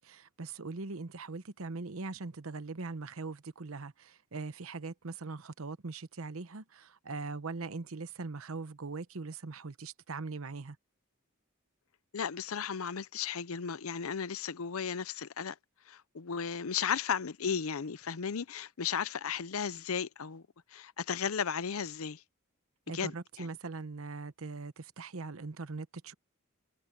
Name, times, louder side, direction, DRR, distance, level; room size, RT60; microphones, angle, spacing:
voice 1, 0.0-10.8 22.9-26.1, right 3 dB, 80° right, 0.9 m, -41 dB
voice 2, 12.1-15.6 15.9-20.4 20.7-22.2 22.9-23.5, left 7 dB, 85° left, 0.7 m, -35 dB
head